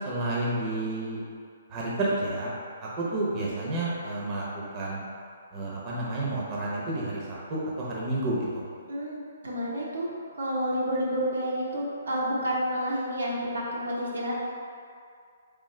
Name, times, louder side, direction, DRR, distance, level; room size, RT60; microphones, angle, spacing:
voice 1, 0.0-1.2 1.7-2.5 3.0-5.0 5.5-8.6, right 2 dB, 25° right, -6 dB, 0.8 m, -30 dB
voice 2, 8.9-10.1 10.4-14.4, equal, 90° right, -5 dB, 1.1 m, -29 dB
3.7 x 3.5 x 3.3 m, 2.2 s
hypercardioid pair, 155°, 0 cm